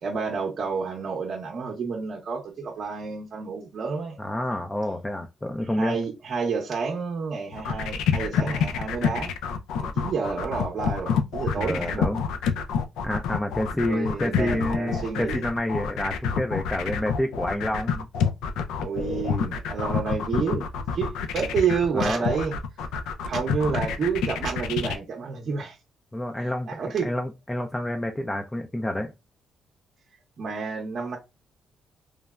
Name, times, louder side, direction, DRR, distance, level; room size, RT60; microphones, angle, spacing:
voice 1, 0.0-4.2 5.8-9.3 9.8-12.1 13.8-15.4 18.8-22.5 23.2-25.8 26.4-27.1 30.4-31.2, right 5 dB, 55° right, 0.7 m, -29 dB
voice 2, 4.2-6.0 11.6-12.2 13.0-18.1 21.9-22.2 26.1-26.7 27.0-29.1, left 1 dB, 15° left, 0.3 m, -28 dB
sound 1, 7.5-25.0, left 7 dB, 90° left, 0.3 m, -27 dB
3.2 x 2.0 x 2.3 m
cardioid pair, 90°, 0 cm